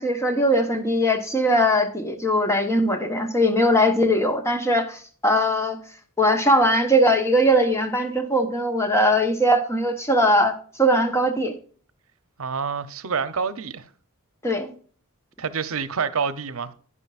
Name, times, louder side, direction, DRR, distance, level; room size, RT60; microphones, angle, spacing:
voice 1, 0.0-5.8 6.2-11.5 14.4-14.7, equal, 15° left, 1.1 m, -20 dB
voice 2, 12.4-13.9 15.4-16.7, right 5 dB, 70° right, 0.8 m, -27 dB
11.0 x 9.8 x 2.5 m
head